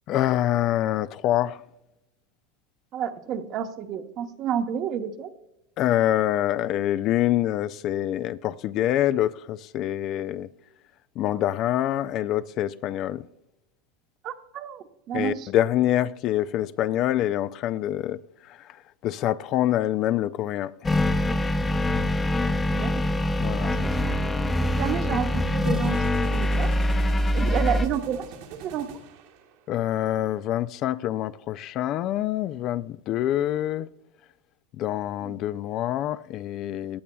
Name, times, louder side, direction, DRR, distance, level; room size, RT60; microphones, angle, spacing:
voice 1, 0.1-1.6 5.8-10.5 11.2-13.3 15.1-18.2 18.5-18.7 19.0-20.7 23.4-23.8 29.7-33.9 34.8-37.0, left 12 dB, 45° left, 0.3 m, -26 dB
voice 2, 2.9-5.3 14.2-15.5 22.7-23.0 23.8-24.2 24.7-26.0 26.2-26.7 27.3-28.9 35.2-35.4, right 9 dB, 40° right, 1.0 m, -30 dB
sound 1, 20.8-27.9, left 1 dB, 15° left, 0.8 m, -24 dB
sound 2, 25.6-29.8, right 6 dB, 70° right, 2.0 m, -44 dB
17.0 x 10.5 x 2.3 m
supercardioid pair, 135°, 0 cm